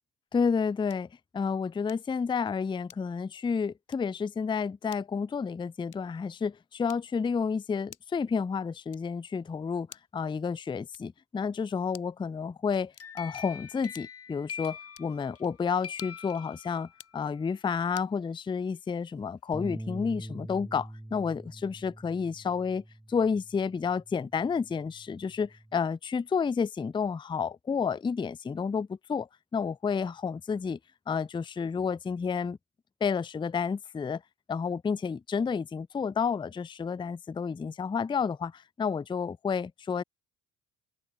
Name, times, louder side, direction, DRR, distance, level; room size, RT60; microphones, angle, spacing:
voice 1, 0.3-1.1 1.3-9.9 10.1-22.8 23.1-30.8 31.1-32.6 33.0-34.2 34.5-40.0, left 6 dB, 15° left, 0.4 m, -30 dB
sound 1, 0.9-1.2 1.9-2.2 2.9-3.3 3.9-4.2 4.9-5.2 5.9-6.2 6.9-7.3 7.9-8.3 8.9-9.3 9.9-10.3 10.9-11.3 11.9-12.3 12.9-13.3 13.9-14.3 14.9-15.2 15.9-16.3 16.9-17.2 17.9-18.2, left 8 dB, 60° left, 7.7 m, -52 dB
sound 2, 12.7-15.5 15.8-17.1, left 7 dB, 40° left, 1.5 m, -43 dB
sound 3, 19.5-25.8, right 1 dB, 5° right, 0.8 m, -44 dB
open air
supercardioid pair, 65°, 35 cm